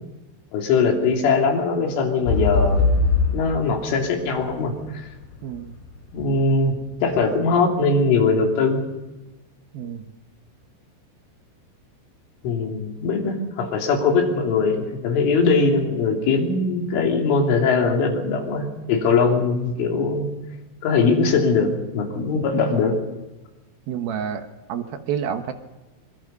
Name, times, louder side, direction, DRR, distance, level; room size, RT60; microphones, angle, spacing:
voice 1, 0.5-2.9 3.3-5.1 6.1-6.7 7.0-8.8 12.4-20.2 20.8-23.0, left 4 dB, 75° left, 1 dB, 5.6 m, -21 dB
sound 1, 2.3-6.1 6.7-6.8, left 3 dB, 55° left, 5.8 m, -22 dB
voice 2, 5.4-5.8 9.7-10.0 22.3-22.4 23.9-25.5, right 8 dB, 70° right, 7 dB, 2.4 m, -29 dB
25.0 x 22.0 x 5.5 m, 1.1 s
omnidirectional pair, 5.6 m